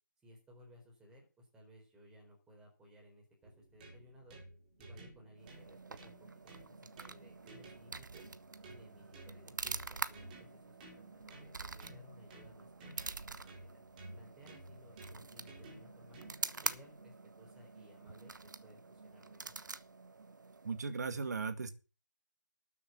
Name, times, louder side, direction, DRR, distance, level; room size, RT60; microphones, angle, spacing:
voice 1, 0.2-4.4 4.8-8.3 8.7-13.8 14.1-16.2 16.6-18.3 18.6-19.5, equal, 5° right, -1 dB, 4.1 m, -60 dB
sound 1, 3.4-17.1, right 2 dB, 25° right, 3.9 m, -55 dB
sound 2, 5.4-21.0, right 4 dB, 75° right, 1.1 m, -46 dB
voice 2, 20.6-21.7, right 4 dB, 60° right, 10 dB, 1.8 m, -37 dB
13.0 x 6.9 x 6.1 m, 0.35 s
figure-of-eight pair, 160°, 10 cm